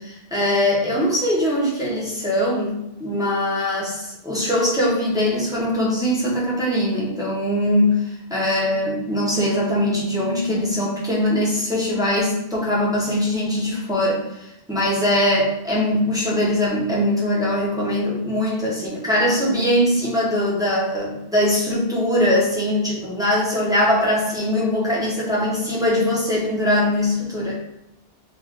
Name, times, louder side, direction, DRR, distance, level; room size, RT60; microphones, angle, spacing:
voice 1, 0.0-27.5, left 1 dB, 5° right, -7 dB, 1.1 m, -21 dB
3.4 x 2.8 x 3.7 m, 0.86 s
omnidirectional pair, 1.2 m